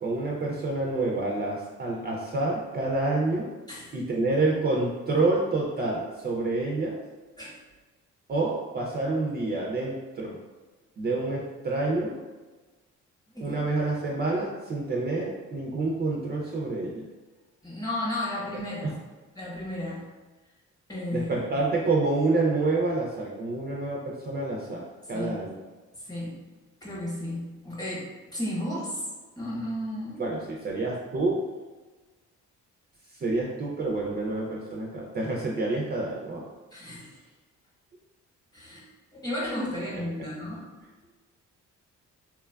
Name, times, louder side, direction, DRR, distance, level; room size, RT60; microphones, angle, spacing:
voice 1, 0.0-3.5 3.9-7.0 8.3-10.4 11.0-12.2 13.4-17.0 21.1-24.8 25.1-25.6 30.2-31.4 33.2-36.4, right 2 dB, 35° right, -2 dB, 0.4 m, -28 dB
voice 2, 17.6-19.0 19.3-20.0 20.9-21.4 25.1-25.4 26.0-26.3 26.8-28.1 28.3-29.0 29.3-30.2 36.7-37.1 38.5-38.9 39.1-40.7, left 1 dB, 15° left, -5 dB, 0.9 m, -33 dB
2.9 x 2.2 x 2.2 m, 1.3 s
cardioid pair, 90°, 30 cm